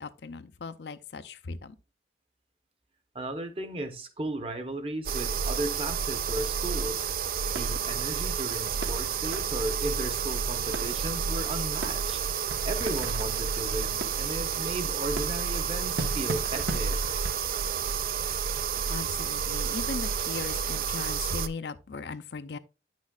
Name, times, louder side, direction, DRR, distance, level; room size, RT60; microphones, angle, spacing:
voice 1, 0.0-1.8 18.9-22.6, left 4 dB, 75° left, 0.6 m, -38 dB
voice 2, 3.1-7.1 7.5-17.2, right 1 dB, 30° right, 0.9 m, -35 dB
sound 1, 5.1-21.5, right 7 dB, 55° right, 0.4 m, -30 dB
sound 2, 7.5-17.5, right 2 dB, 85° right, 1.2 m, -41 dB
9.5 x 6.2 x 2.3 m
head